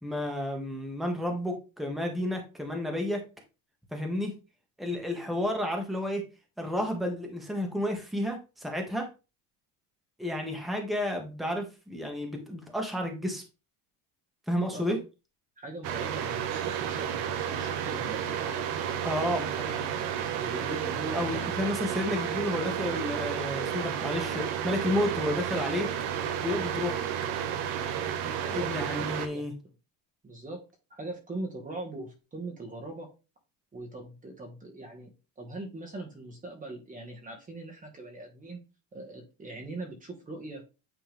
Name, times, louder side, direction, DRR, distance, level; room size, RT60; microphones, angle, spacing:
voice 1, 0.0-3.2 3.9-4.3 4.8-6.2 6.6-9.1 10.2-13.4 14.5-15.0 19.0-19.5 21.1-25.9 26.4-27.0 28.4-29.5, left 1 dB, ahead, 2 dB, 1.5 m, -31 dB
voice 2, 15.6-19.4 19.7-21.5 28.2-29.4 30.2-30.6 30.9-33.1 33.7-38.6 38.9-40.6, right 2 dB, 20° right, 1 dB, 1.4 m, -41 dB
sound 1, 15.8-29.3, right 9 dB, 65° right, 1.2 m, -32 dB
9.2 x 3.5 x 3.4 m, 0.30 s
cardioid pair, 140°, 43 cm